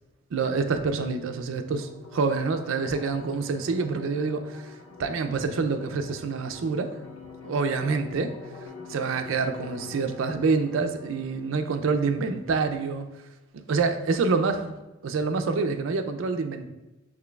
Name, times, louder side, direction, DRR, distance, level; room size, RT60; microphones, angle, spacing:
voice 1, 0.3-4.7 5.0-6.9 7.4-8.4 8.9-13.1 13.7-14.7 15.0-16.7, right 4 dB, 80° right, 8 dB, 0.4 m, -27 dB
sound 1, 1.3-12.3, left 4 dB, 80° left, 0.7 m, -45 dB
5.9 x 3.0 x 2.2 m, 1.0 s
head